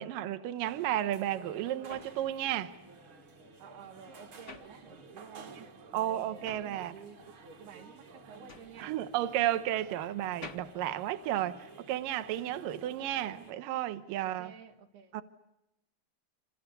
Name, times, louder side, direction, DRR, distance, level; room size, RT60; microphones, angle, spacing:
voice 1, 0.0-2.7 5.9-6.9 8.8-14.5 15.1-15.2, right 12 dB, 70° right, 2.6 m, -33 dB
sound 1, 0.6-13.5, right 3 dB, 40° right, 2.4 m, -53 dB
sound 2, 1.2-5.4 5.7-11.9, left 4 dB, 35° left, 1.2 m, -53 dB
voice 2, 3.6-8.9 12.6-12.9 14.2-15.1, right 6 dB, 85° right, 4.2 m, -52 dB
28.0 x 27.5 x 6.9 m
omnidirectional pair, 4.4 m